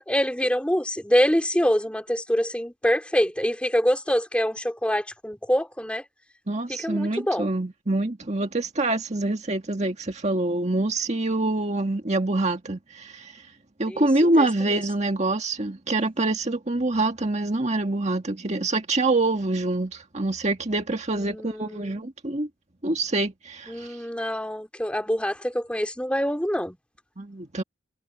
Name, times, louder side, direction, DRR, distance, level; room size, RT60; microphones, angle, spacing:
voice 1, 0.0-6.0 6.7-7.5 13.9-14.1 14.4-14.5 14.7-14.8 21.1-22.0 23.7-26.8, equal, 5° left, 2.6 m, -25 dB
voice 2, 6.5-13.4 13.8-22.5 22.8-24.0 27.2-27.6, right 2 dB, 35° right, 1.7 m, -25 dB
head